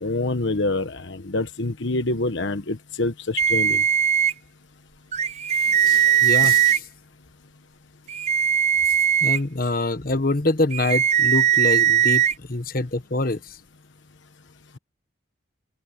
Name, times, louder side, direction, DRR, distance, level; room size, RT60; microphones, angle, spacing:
voice 1, 0.0-3.8, left 2 dB, 70° left, 1.2 m, -26 dB
sound 1, 3.4-4.3 5.1-6.8 8.1-9.4 10.7-12.3, right 9 dB, 35° right, 0.5 m, -19 dB
voice 2, 5.8-6.8 9.2-12.2 12.5-13.4, left 2 dB, 45° left, 1.2 m, -25 dB
head